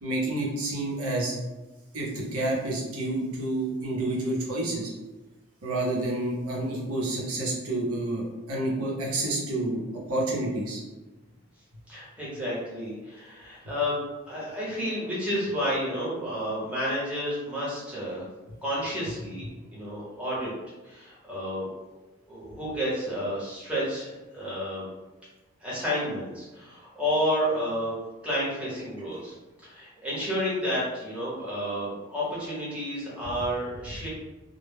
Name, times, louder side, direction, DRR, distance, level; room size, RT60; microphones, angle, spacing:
voice 1, 0.0-1.4 1.9-4.9 5.6-10.8, right 2 dB, 85° right, -3 dB, 0.7 m, -29 dB
voice 2, 11.9-18.3 18.6-19.4 19.7-20.5 20.8-21.7 22.3-24.9 25.6-28.0 28.2-29.3 29.6-34.1, equal, 5° right, -8 dB, 0.8 m, -31 dB
2.1 x 2.1 x 3.3 m, 1.1 s
head